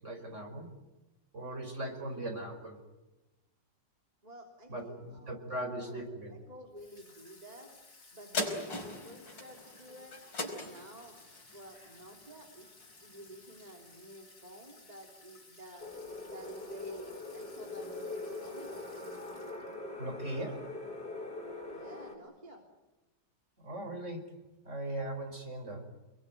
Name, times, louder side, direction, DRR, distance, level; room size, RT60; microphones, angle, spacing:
voice 1, 0.0-0.7 1.3-2.8 4.7-6.3 20.0-20.7 23.6-24.3 24.6-25.9, right 1 dB, 40° right, 5 dB, 5.1 m, -39 dB
voice 2, 4.2-6.0 6.3-7.7 8.1-10.2 10.4-11.2 11.5-12.7 13.0-15.9 16.2-19.0 21.7-22.7, equal, 20° right, 1 dB, 3.5 m, -51 dB
Water tap faucet / Sink (filling or washing), 6.7-19.9, left 3 dB, 45° left, 3.9 m, -58 dB
sound 1, 8.3-13.1 13.6-13.7, left 2 dB, 80° left, 5.6 m, -40 dB
sound 2, 15.8-22.2, left 2 dB, 65° left, 6.7 m, -42 dB
29.0 x 22.5 x 9.2 m, 1.1 s
omnidirectional pair, 2.0 m